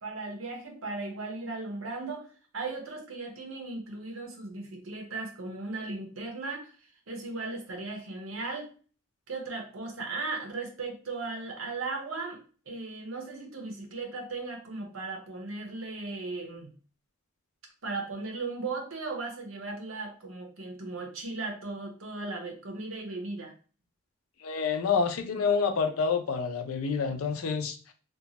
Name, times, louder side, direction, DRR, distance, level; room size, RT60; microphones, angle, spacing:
voice 1, 0.0-2.3 2.5-6.7 7.1-8.7 9.3-16.7 17.8-23.5, right 3 dB, 75° right, 0.8 m, -37 dB
voice 2, 24.4-27.9, left 5 dB, 85° left, 0.5 m, -28 dB
2.6 x 2.3 x 2.8 m
head